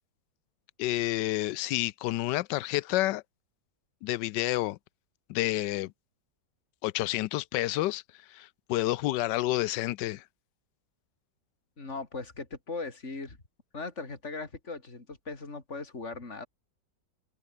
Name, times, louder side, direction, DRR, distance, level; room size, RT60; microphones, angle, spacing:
voice 1, 0.8-3.2 4.0-4.8 5.3-5.9 6.8-8.0 8.3-10.2, left 17 dB, 90° left, 1.2 m, -29 dB
voice 2, 11.8-13.4 13.7-16.5, left 3 dB, 40° left, 4.1 m, -39 dB
omnidirectional pair, 1.8 m